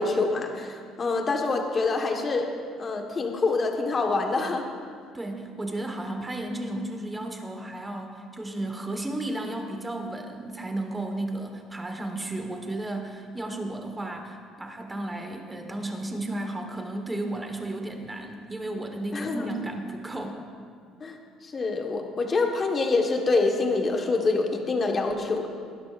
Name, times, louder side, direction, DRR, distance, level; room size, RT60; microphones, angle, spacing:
voice 1, 0.0-2.5 2.8-4.6 19.1-19.5 21.0-21.2 21.4-25.5, left 3 dB, 30° left, 2 dB, 1.4 m, -26 dB
voice 2, 5.1-20.4, right 1 dB, 15° right, 4 dB, 1.4 m, -33 dB
20.5 x 12.5 x 2.5 m, 2.1 s
cardioid pair, 130°, 0 cm